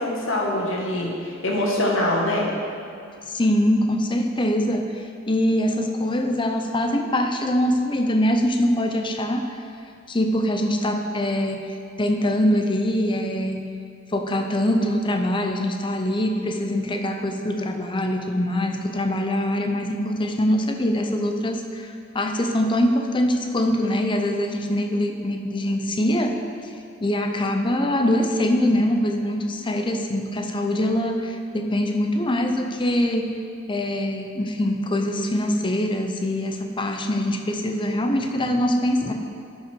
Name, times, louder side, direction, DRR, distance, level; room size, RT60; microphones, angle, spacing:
voice 1, 0.0-2.5, left 1 dB, 85° left, -2 dB, 1.7 m, -24 dB
voice 2, 3.3-9.4 10.1-13.7 14.1-26.4 27.0-33.3 33.7-39.1, left 1 dB, 25° left, 4 dB, 0.7 m, -23 dB
12.0 x 5.6 x 4.6 m, 2.5 s
head